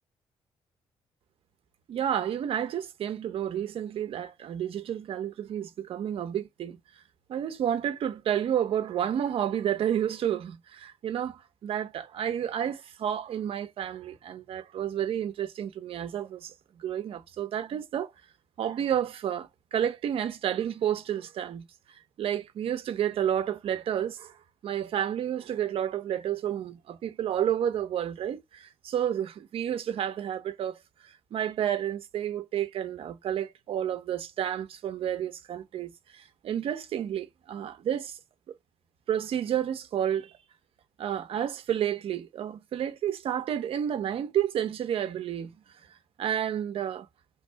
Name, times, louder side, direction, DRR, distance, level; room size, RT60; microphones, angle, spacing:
voice 1, 1.9-6.8 7.3-18.1 18.6-21.7 22.2-24.3 24.6-38.2 39.1-40.3 41.0-45.5 46.2-47.1, right 10 dB, 65° right, 0.8 m, -30 dB
3.5 x 3.3 x 4.5 m
cardioid pair, 140°, 10 cm